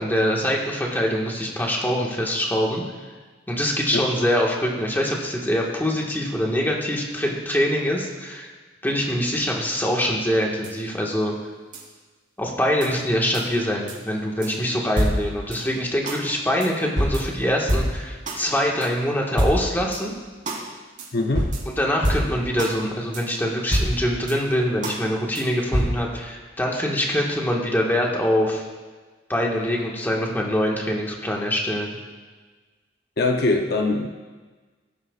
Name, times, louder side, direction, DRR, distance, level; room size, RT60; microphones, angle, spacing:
voice 1, 0.0-2.8 3.5-8.5 8.8-11.3 12.4-20.1 21.7-28.6 29.3-32.0, equal, 10° left, -2 dB, 1.6 m, -24 dB
sound 1, 10.6-10.7 11.7-11.8 12.8-12.9 13.3-13.4 13.9-14.0 14.4-14.5 15.0-15.6 16.0-16.2 16.6-16.7 17.0-18.4 18.8-18.9 19.4-20.0 20.5-20.6 21.0-21.1 21.3-22.7 23.1-23.2 23.7-24.4 24.8-25.0 25.3-25.4 25.7-25.9, equal, 45° right, 3.2 m, -25 dB
voice 2, 21.1-21.5 33.2-34.1, left 2 dB, 60° left, 3 dB, 0.8 m, -22 dB
18.0 x 9.9 x 2.4 m, 1.3 s
head